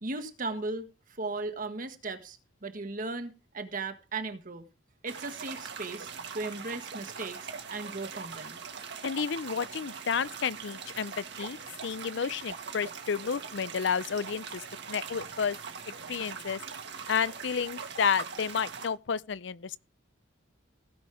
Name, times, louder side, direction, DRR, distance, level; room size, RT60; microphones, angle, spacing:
voice 1, 0.0-0.9 1.2-4.7 5.0-6.1 6.3-8.6, right 3 dB, 45° right, 1.4 m, -37 dB
sound 1, 5.1-18.9, right 6 dB, 60° right, 1.8 m, -42 dB
voice 2, 9.0-11.6 11.8-15.6 16.1-16.6 17.1-19.8, left 6 dB, 65° left, 0.5 m, -31 dB
17.5 x 6.3 x 3.5 m
head